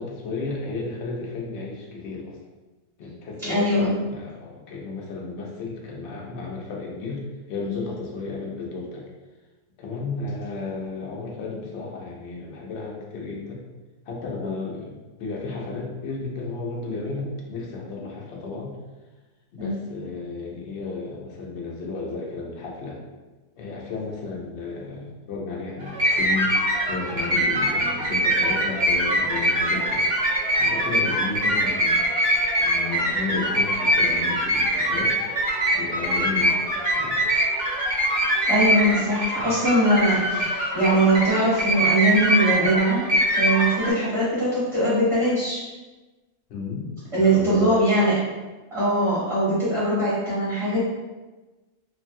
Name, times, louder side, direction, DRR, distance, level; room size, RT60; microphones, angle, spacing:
voice 1, 0.0-2.4 3.0-9.0 9.8-13.6 14.1-18.8 19.5-23.0 23.6-26.5 26.9-30.0 30.3-32.1 32.6-35.1 35.7-36.6 36.9-37.2 39.4-39.5 46.5-46.9 47.1-47.8, left 3 dB, 60° left, -2 dB, 0.7 m, -33 dB
voice 2, 3.4-3.9 19.6-19.8 38.5-43.1 43.3-45.6 47.1-48.1 48.7-50.8, right 1 dB, 25° right, -11 dB, 0.9 m, -21 dB
sound 1, 25.8-43.9, equal, 70° right, 1.3 m, -23 dB
3.0 x 2.2 x 2.5 m, 1.2 s
omnidirectional pair, 1.6 m